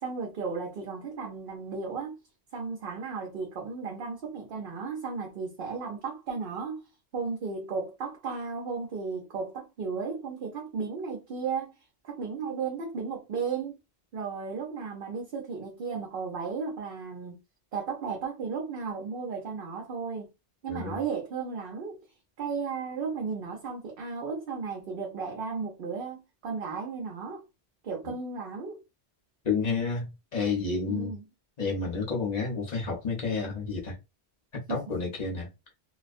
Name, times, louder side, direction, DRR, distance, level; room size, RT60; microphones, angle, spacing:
voice 1, 0.0-2.2 2.5-6.8 7.1-11.8 12.0-13.8 14.1-17.4 17.7-20.3 20.6-22.0 22.4-27.4 27.8-28.8 30.8-31.2 34.7-34.8, right 5 dB, 65° right, 0.8 m, -34 dB
voice 2, 29.4-31.1 31.6-33.9 34.5-35.5, left 4 dB, 40° left, 0.9 m, -30 dB
2.4 x 2.1 x 2.5 m
omnidirectional pair, 1.1 m